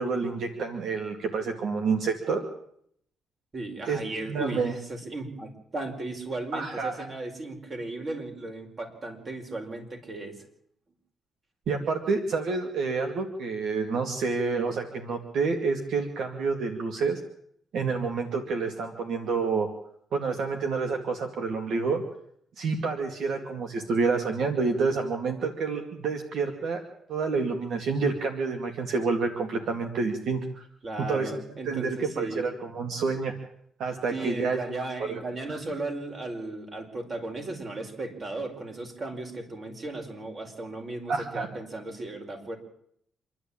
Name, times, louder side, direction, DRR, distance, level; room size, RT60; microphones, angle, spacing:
voice 1, 0.0-2.4 3.9-4.7 6.5-6.9 11.7-17.2 17.7-19.7 20.1-22.0 22.6-26.8 27.1-30.7 31.0-31.4 31.6-33.3 33.8-35.2 35.5-35.6 41.1-41.5, right 4 dB, 70° right, 5 dB, 2.3 m, -28 dB
voice 2, 3.5-10.3 30.8-32.4 34.1-42.6, right 2 dB, 35° right, 3 dB, 5.0 m, -36 dB
27.0 x 11.5 x 8.8 m, 0.69 s
cardioid pair, 110°, 0 cm